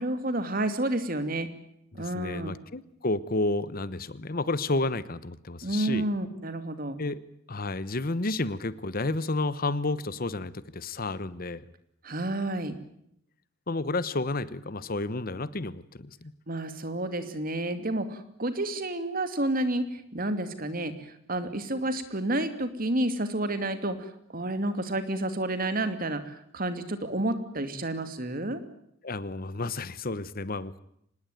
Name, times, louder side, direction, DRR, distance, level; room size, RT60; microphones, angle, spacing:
voice 1, 0.0-1.5 1.9-2.5 5.6-7.0 12.0-12.7 16.5-28.6, right 1 dB, 45° right, 10 dB, 2.7 m, -30 dB
voice 2, 2.0-6.1 7.0-7.2 7.5-11.6 13.7-16.3 29.0-30.8, left 2 dB, 50° left, 16 dB, 1.1 m, -31 dB
25.5 x 20.0 x 9.3 m, 0.74 s
head